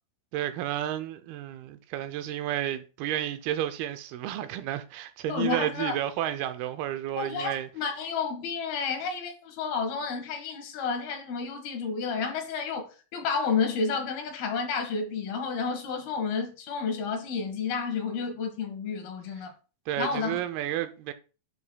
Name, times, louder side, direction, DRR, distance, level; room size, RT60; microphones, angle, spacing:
voice 1, 0.3-7.7 19.9-21.1, right 12 dB, 85° right, 2.4 m, -31 dB
voice 2, 5.3-6.0 7.2-19.5 20.0-20.4, left 5 dB, 75° left, 3.3 m, -31 dB
10.5 x 6.4 x 2.2 m
omnidirectional pair, 4.5 m